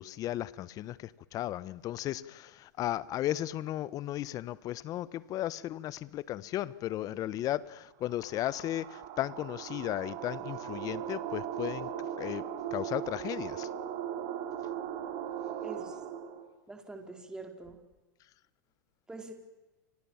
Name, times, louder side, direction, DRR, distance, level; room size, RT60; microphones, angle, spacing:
voice 1, 0.0-11.9 12.2-13.7, left 13 dB, 35° left, 1.2 m, -35 dB
sound 1, 8.0-16.4, right 9 dB, 45° right, 4.5 m, -38 dB
voice 2, 15.6-16.0 16.7-17.8 19.1-19.3, right 3 dB, 5° right, 4.4 m, -44 dB
30.0 x 24.0 x 7.4 m
hypercardioid pair, 115°, 10 cm